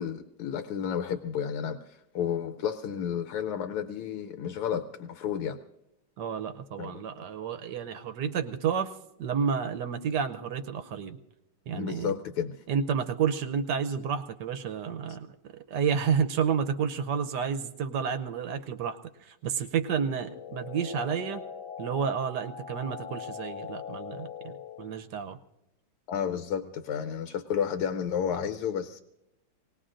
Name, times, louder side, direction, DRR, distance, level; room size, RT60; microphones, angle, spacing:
voice 1, 0.0-5.6 6.8-7.0 11.7-12.6 26.1-29.0, left 8 dB, 85° left, 8 dB, 1.6 m, -32 dB
voice 2, 6.2-8.9 9.2-11.2 11.7-12.2 12.7-15.3 15.7-21.4 21.8-25.4, right 7 dB, 65° right, 8 dB, 1.1 m, -30 dB
sound 1, 20.1-25.0, left 8 dB, 70° left, 1.5 m, -41 dB
26.5 x 19.5 x 2.5 m, 0.91 s
omnidirectional pair, 2.4 m